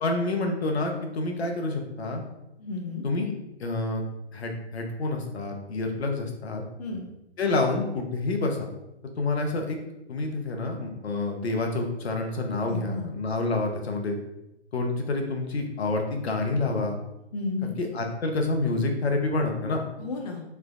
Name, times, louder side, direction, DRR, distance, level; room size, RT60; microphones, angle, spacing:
voice 1, 0.0-2.2 3.0-3.3 3.6-4.0 4.3-6.6 7.4-8.7 9.2-9.8 10.1-14.2 14.7-17.0 17.8-19.8, left 2 dB, 65° left, 3 dB, 0.8 m, -28 dB
voice 2, 2.6-3.0 6.8-7.0 12.7-13.1 17.3-17.8 20.0-20.4, left 3 dB, 35° left, 1 dB, 0.4 m, -32 dB
3.3 x 3.2 x 2.5 m, 0.90 s
figure-of-eight pair, 135°, 34 cm